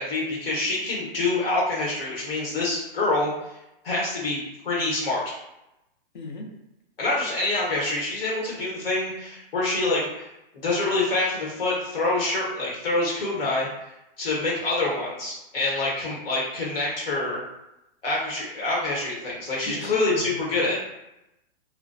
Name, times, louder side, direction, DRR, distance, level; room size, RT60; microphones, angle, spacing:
voice 1, 0.0-3.3 3.8-5.3 7.0-10.3 10.6-13.7 14.2-17.4 18.0-20.8, left 2 dB, 65° left, -4 dB, 1.1 m, -26 dB
voice 2, 6.1-6.6 19.7-20.8, left 2 dB, 50° left, 0 dB, 0.6 m, -37 dB
2.5 x 2.2 x 2.3 m, 0.90 s
hypercardioid pair, 175°, 30 cm